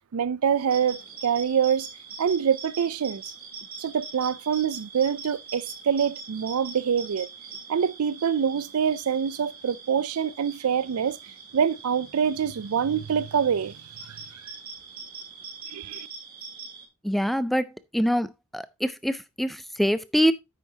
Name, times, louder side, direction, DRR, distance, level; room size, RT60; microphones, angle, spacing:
voice 1, 0.1-1.9 2.2-3.2 3.8-7.3 7.7-11.2 11.5-13.7 14.1-14.2 15.7-16.1, right 7 dB, 75° right, 0.4 m, -25 dB
sound 1, 0.7-16.9, right 5 dB, 45° right, 2.9 m, -43 dB
voice 2, 17.0-17.7 17.9-18.3 18.5-20.3, equal, ahead, 0.4 m, -24 dB
9.6 x 8.2 x 2.8 m
head